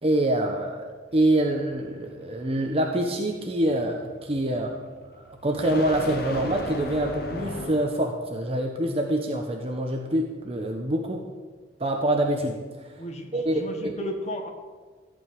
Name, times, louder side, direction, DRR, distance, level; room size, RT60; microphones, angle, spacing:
voice 1, 0.0-0.8 1.1-4.8 5.1-11.2 11.8-12.6 13.3-14.0, right 1 dB, 35° right, 2 dB, 1.1 m, -25 dB
sound 1, 1.1-8.1, left 1 dB, 60° left, 1.5 m, -37 dB
voice 2, 13.0-14.5, equal, 40° left, 4 dB, 1.6 m, -34 dB
14.5 x 5.4 x 9.2 m, 1.4 s
head